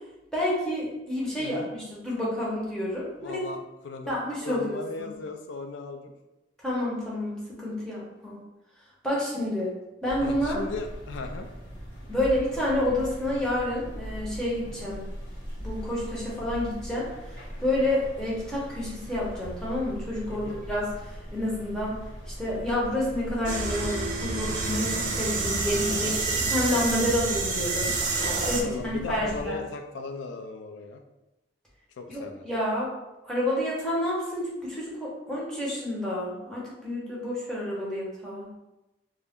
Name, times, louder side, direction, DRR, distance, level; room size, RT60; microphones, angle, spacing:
voice 1, 0.3-3.4 4.1-5.1 6.6-8.4 9.0-9.7 10.0-10.6 12.1-15.0 15.6-17.1 17.6-26.2 26.4-27.9 28.4-29.6 32.1-32.9 33.2-38.5, left 1 dB, 5° left, -7 dB, 0.7 m, -29 dB
voice 2, 1.4-1.7 3.2-6.1 9.1-9.2 10.2-11.5 14.6-14.9 20.3-20.6 25.9-26.2 26.6-26.9 28.6-31.0 32.0-32.4, left 3 dB, 85° left, 5 dB, 0.4 m, -37 dB
sound 1, 10.1-29.5, equal, 70° left, 1.1 m, -40 dB
sound 2, 23.5-28.6, right 3 dB, 45° right, 0.4 m, -28 dB
2.4 x 2.1 x 3.5 m, 0.97 s
head